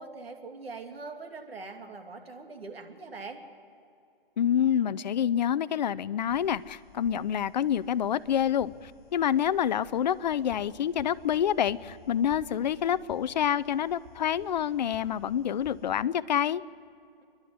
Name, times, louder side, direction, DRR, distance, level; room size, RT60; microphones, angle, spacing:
voice 1, 0.0-3.4, right 3 dB, 90° right, 4 dB, 2.9 m, -42 dB
voice 2, 4.4-16.6, left 9 dB, 50° left, 16 dB, 0.6 m, -27 dB
sound 1, 6.3-16.0, left 6 dB, 25° left, 4.3 m, -54 dB
29.0 x 11.5 x 9.4 m, 2.5 s
hypercardioid pair, 160°, 29 cm